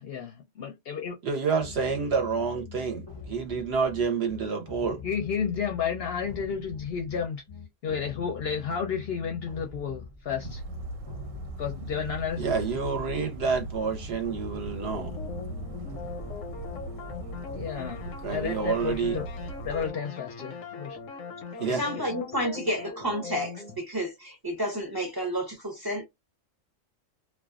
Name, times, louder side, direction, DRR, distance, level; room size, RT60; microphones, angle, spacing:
voice 1, 0.0-1.2 5.0-7.4 7.8-10.6 11.6-12.4 17.5-19.3 19.6-21.0 21.7-21.8, left 7 dB, 60° left, 0.7 m, -32 dB
voice 2, 1.2-5.0 12.4-15.2 18.2-19.2 21.6-21.8, right 5 dB, 60° right, 0.8 m, -28 dB
sound 1, 1.6-17.7, left 5 dB, 30° left, 0.5 m, -44 dB
Bird vocalization bird call bird song, 10.4-19.9, right 2 dB, 90° right, 1.0 m, -40 dB
sound 2, 14.8-23.8, left 5 dB, 90° left, 1.0 m, -41 dB
voice 3, 21.7-26.0, equal, 25° right, 0.5 m, -31 dB
2.4 x 2.2 x 2.3 m
omnidirectional pair, 1.3 m